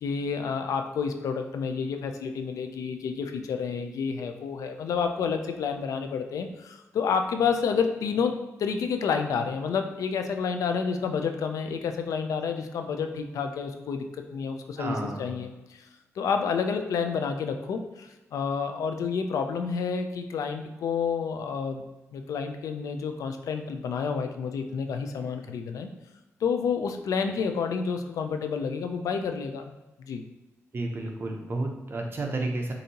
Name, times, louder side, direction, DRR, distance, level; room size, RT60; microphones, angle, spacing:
voice 1, 0.0-15.8 16.2-21.8 22.1-25.9 26.4-29.7 30.1-30.2, left 6 dB, 85° left, 6 dB, 0.5 m, -29 dB
voice 2, 14.8-15.3 30.7-32.7, right 2 dB, 40° right, 1 dB, 0.9 m, -31 dB
6.5 x 2.7 x 2.8 m, 1.1 s
cardioid pair, 80°, 6 cm